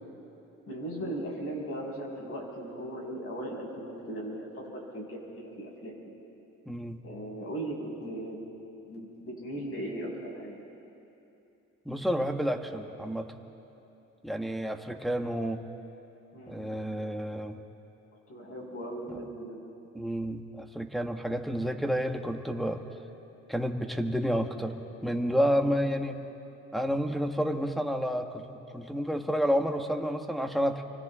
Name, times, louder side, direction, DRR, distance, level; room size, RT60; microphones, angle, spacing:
voice 1, 0.7-6.0 7.0-8.4 8.9-10.5 16.3-16.6 18.3-19.6, right 1 dB, 45° left, -2 dB, 5.9 m, -38 dB
voice 2, 6.7-7.0 11.8-13.4 14.2-15.6 16.5-17.6 19.1-19.2 19.9-22.8 23.5-26.2 26.7-30.8, equal, ahead, 3 dB, 1.4 m, -30 dB
30.0 x 24.5 x 3.7 m, 2.9 s
cardioid pair, 90°, 30 cm